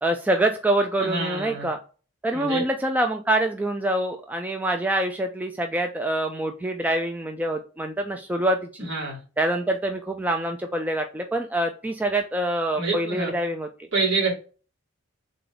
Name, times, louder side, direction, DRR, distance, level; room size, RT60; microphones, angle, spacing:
voice 1, 0.0-1.8 2.2-8.9 9.4-13.7, right 1 dB, 10° right, 4 dB, 0.3 m, -25 dB
voice 2, 1.0-1.7 2.3-2.6 8.8-9.2 12.7-13.3 13.9-14.3, right 3 dB, 60° right, -5 dB, 2.5 m, -26 dB
3.8 x 3.4 x 3.8 m, 0.36 s
head